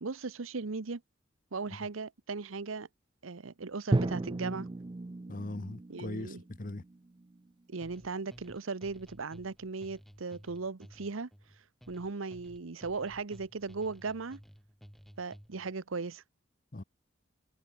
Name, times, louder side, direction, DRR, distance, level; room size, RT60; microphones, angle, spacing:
voice 1, 0.0-1.0 1.5-2.9 3.2-4.7 5.9-6.4 7.7-11.3 11.9-14.4 15.2-16.2, right 4 dB, 85° right, 0.9 m, -37 dB
Drum, 3.9-7.9, right 2 dB, 25° right, 0.4 m, -35 dB
voice 2, 5.3-6.8 16.7-16.8, left 2 dB, 40° left, 0.9 m, -40 dB
sound 1, 7.8-15.7, equal, ahead, 3.1 m, -55 dB
head